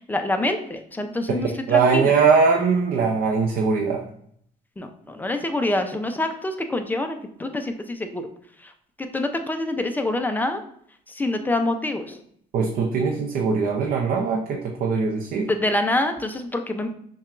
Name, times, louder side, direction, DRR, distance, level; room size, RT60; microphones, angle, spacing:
voice 1, 0.1-2.1 4.8-8.2 9.1-10.6 11.2-12.2 15.5-16.9, left 2 dB, 10° left, 6 dB, 0.4 m, -26 dB
voice 2, 1.4-4.0 12.5-15.5, right 5 dB, 60° right, 1 dB, 0.5 m, -21 dB
5.7 x 2.3 x 2.4 m, 0.66 s
cardioid pair, 110°, 17 cm